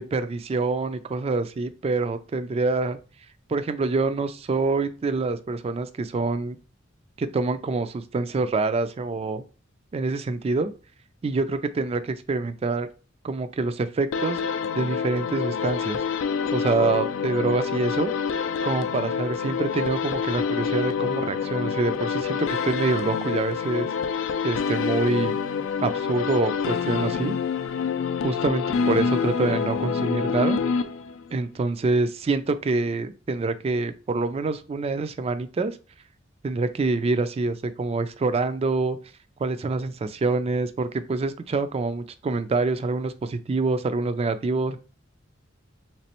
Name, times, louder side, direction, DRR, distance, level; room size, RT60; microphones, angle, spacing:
voice 1, 0.0-3.0 3.5-6.6 7.2-9.4 9.9-10.7 11.2-12.9 13.2-14.4 14.7-16.0 16.5-18.1 18.6-23.9 24.4-25.4 25.8-27.4 28.2-30.6 31.3-35.8 36.4-39.0 39.4-44.8, right 3 dB, 30° right, 11 dB, 0.3 m, -26 dB
sound 1, 14.1-31.3, left 6 dB, 70° left, 0.3 m, -27 dB
3.3 x 3.0 x 2.9 m, 0.35 s
head